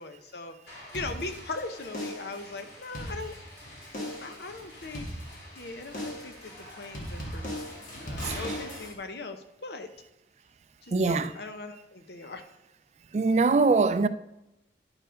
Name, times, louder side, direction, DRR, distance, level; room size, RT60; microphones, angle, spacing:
voice 1, 0.0-3.4 3.9-5.3 5.6-9.9 10.8-12.4, left 3 dB, 70° left, 0.8 m, -40 dB
sound 1, 0.7-8.9, left 1 dB, 85° left, 3.6 m, -46 dB
sound 2, 0.9-1.6 1.9-2.4 2.8-3.6 3.9-4.4 4.9-5.6 5.9-6.4 6.9-8.9, equal, 45° left, 1.6 m, -38 dB
voice 2, 10.9-11.3 13.1-14.1, right 4 dB, 40° right, 0.3 m, -22 dB
10.5 x 4.6 x 5.1 m
head